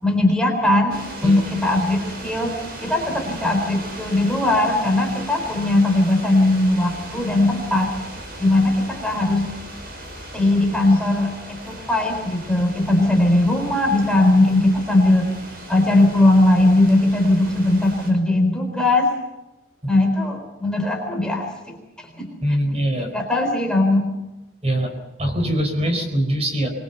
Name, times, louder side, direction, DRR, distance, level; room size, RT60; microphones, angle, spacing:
voice 1, 0.0-2.5 2.8-7.9 8.4-9.5 10.3-15.3 15.7-19.1 19.9-22.3 23.0-24.1, left 2 dB, 5° left, 2 dB, 3.8 m, -19 dB
sound 1, 0.9-18.1, right 1 dB, 50° right, 6.5 m, -37 dB
voice 2, 22.4-23.1 24.6-24.9 25.2-26.7, right 1 dB, 30° right, 5 dB, 4.2 m, -22 dB
25.0 x 21.5 x 7.0 m, 1.0 s
head